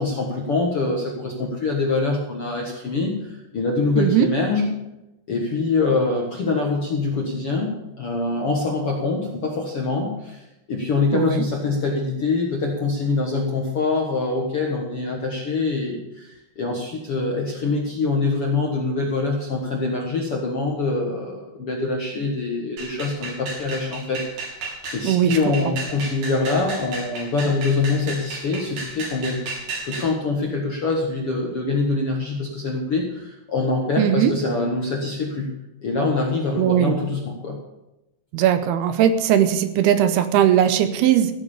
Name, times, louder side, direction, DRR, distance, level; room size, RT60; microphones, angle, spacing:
voice 1, 0.0-4.7 5.3-24.3 24.5-24.6 24.9-29.4 29.8-35.5 35.8-37.6, left 3 dB, 60° left, 0 dB, 1.5 m, -24 dB
voice 2, 4.0-4.3 11.1-11.4 25.0-25.4 34.0-34.3 36.6-36.9 38.3-41.3, right 10 dB, 80° right, 11 dB, 2.7 m, -19 dB
sound 1, 22.8-30.1, right 3 dB, 65° right, 5.1 m, -33 dB
14.5 x 8.2 x 7.1 m, 0.93 s
omnidirectional pair, 4.8 m